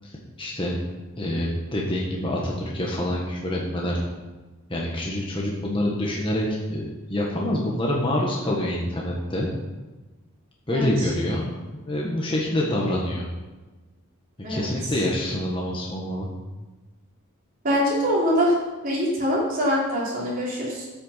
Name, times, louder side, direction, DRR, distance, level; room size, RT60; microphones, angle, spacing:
voice 1, 0.4-0.8 1.2-4.0 4.7-9.5 10.7-13.3 14.5-16.3, left 1 dB, 25° left, -3 dB, 1.5 m, -26 dB
voice 2, 10.7-11.1 14.4-14.7 17.6-18.5 18.8-20.9, equal, 40° right, -5 dB, 3.5 m, -23 dB
10.0 x 8.8 x 5.8 m, 1.2 s
head